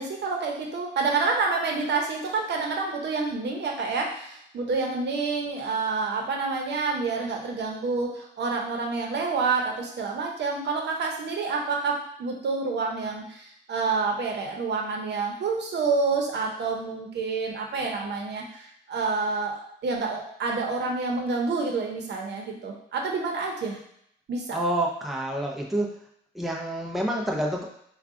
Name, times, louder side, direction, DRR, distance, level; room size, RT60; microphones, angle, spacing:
voice 1, 0.0-23.8 24.3-24.6, right 4 dB, 60° right, 1 dB, 0.9 m, -28 dB
voice 2, 24.5-25.9 26.3-27.6, right 1 dB, ahead, -1 dB, 0.7 m, -28 dB
4.7 x 2.4 x 3.7 m, 0.70 s
cardioid pair, 90°, 20 cm